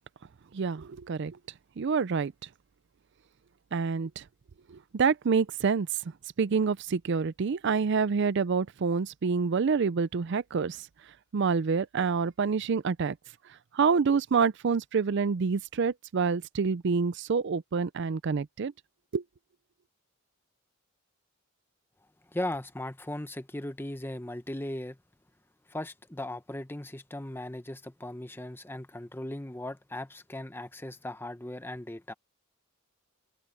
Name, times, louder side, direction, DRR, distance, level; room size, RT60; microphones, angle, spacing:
voice 1, 0.5-1.4 1.8-2.3 3.7-4.2 4.7-5.9 6.4-10.9 11.3-13.2 13.7-18.7 19.1-19.2, right 5 dB, 55° right, 0.4 m, -27 dB
voice 2, 22.3-25.0 25.7-32.1, left 1 dB, 10° left, 0.9 m, -38 dB
head